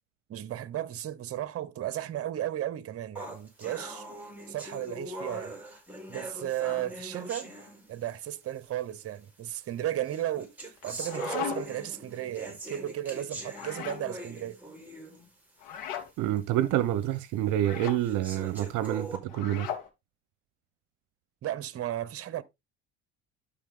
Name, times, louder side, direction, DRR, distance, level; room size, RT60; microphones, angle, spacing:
voice 1, 0.3-4.1 4.5-5.6 6.1-7.5 7.9-10.5 10.8-14.6 21.4-22.4, right 12 dB, 45° right, 1.0 m, -34 dB
sound 1, 3.2-8.3 9.2-9.3 10.0-15.3 15.7-15.8 16.4-16.5 17.1-17.2 18.0-19.2, right 1 dB, 5° right, 4.4 m, -41 dB
sound 2, 10.8-11.8 13.5-14.1 15.6-16.1 17.6-18.0 19.3-19.9, left 9 dB, 65° left, 2.5 m, -37 dB
voice 2, 16.2-19.7, right 13 dB, 65° right, 0.8 m, -28 dB
12.0 x 4.1 x 3.7 m
hypercardioid pair, 75°, 34 cm